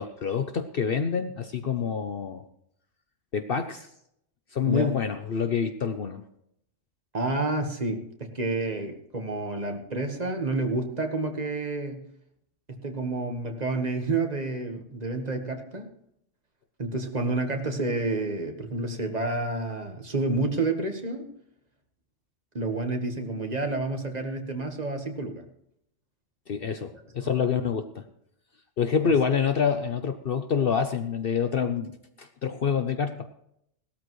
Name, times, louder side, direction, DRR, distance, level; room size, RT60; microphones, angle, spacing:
voice 1, 0.0-2.4 3.3-3.9 4.5-6.2 26.5-28.0 28.8-33.3, left 6 dB, 55° left, 7 dB, 0.9 m, -27 dB
voice 2, 4.7-5.0 7.1-12.1 12.7-15.9 16.8-21.3 22.5-25.4 29.0-29.1, right 2 dB, 35° right, 4 dB, 1.5 m, -29 dB
18.0 x 13.0 x 3.1 m, 0.74 s
omnidirectional pair, 1.3 m